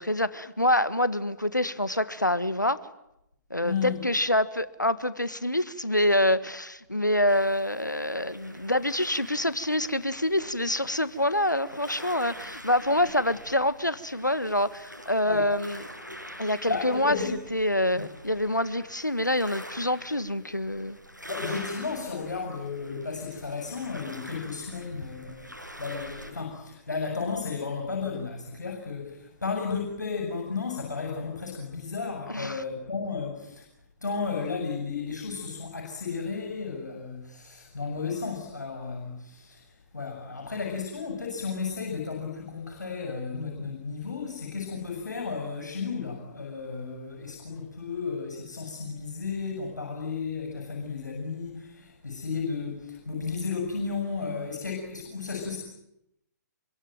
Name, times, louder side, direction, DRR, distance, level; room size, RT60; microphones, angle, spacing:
voice 1, 0.0-2.9 3.5-15.8 16.4-17.2 17.5-21.0 32.3-32.6, left 1 dB, 90° left, 1.5 m, -26 dB
voice 2, 3.6-4.0 15.2-15.5 16.7-17.3 17.9-18.0 21.3-33.7 34.0-55.6, left 5 dB, 75° left, 7.4 m, -33 dB
sound 1, 7.3-26.3, equal, 90° right, 7.4 m, -45 dB
26.5 x 23.5 x 9.3 m
figure-of-eight pair, 125°, 10 cm